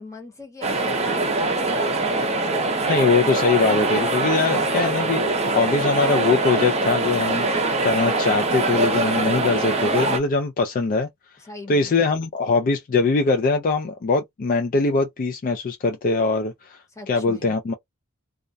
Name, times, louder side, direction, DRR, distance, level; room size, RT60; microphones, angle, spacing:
voice 1, 0.0-2.6 11.4-11.9 16.9-17.6, left 2 dB, 15° left, 0.9 m, -40 dB
sound 1, 0.6-10.2, right 2 dB, 30° right, 0.6 m, -23 dB
voice 2, 2.9-11.1 11.7-17.7, left 4 dB, 40° left, 0.3 m, -22 dB
2.4 x 2.1 x 2.5 m
head